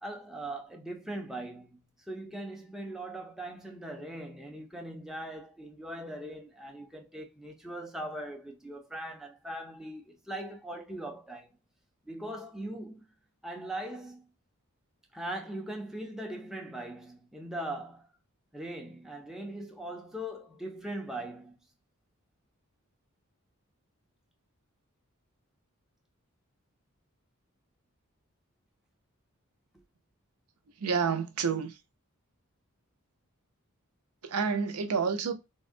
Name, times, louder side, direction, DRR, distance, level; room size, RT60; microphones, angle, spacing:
voice 1, 0.0-11.5 12.1-13.0 13.4-14.3 15.1-18.1 18.5-21.6, right 1 dB, ahead, 0.4 m, -40 dB
voice 2, 30.8-31.8 34.2-35.3, right 5 dB, 90° right, 0.6 m, -29 dB
3.4 x 2.1 x 2.5 m
head